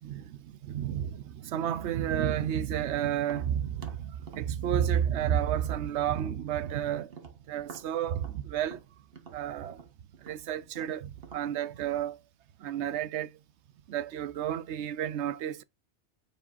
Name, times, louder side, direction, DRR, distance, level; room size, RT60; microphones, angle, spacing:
voice 1, 0.0-7.2 7.5-8.8 9.3-9.8 10.2-12.2 12.6-13.4 13.9-15.6, right 10 dB, 80° right, 0.9 m, -31 dB
Tap, 3.2-6.8 7.1-11.5, right 5 dB, 60° right, 1.5 m, -49 dB
8.8 x 4.8 x 2.5 m
omnidirectional pair, 1.1 m